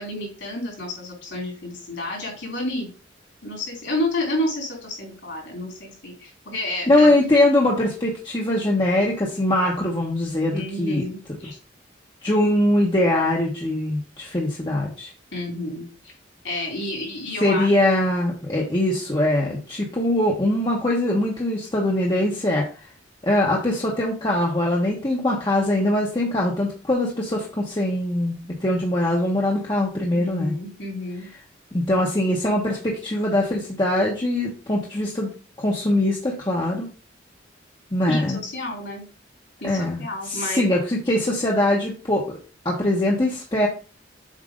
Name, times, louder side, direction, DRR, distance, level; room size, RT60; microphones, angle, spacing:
voice 1, 0.0-2.9 3.4-7.1 10.5-11.6 15.3-16.1 16.4-17.7 30.1-31.3 38.1-39.1 39.6-40.7, left 1 dB, 70° left, -1 dB, 3.6 m, -30 dB
voice 2, 6.9-11.0 12.2-15.1 17.4-22.6 23.2-30.5 31.7-35.3 35.6-36.9 37.9-38.4 39.6-42.2 42.6-43.7, left 1 dB, 25° left, -3 dB, 1.0 m, -22 dB
7.5 x 2.7 x 5.1 m, 0.35 s
head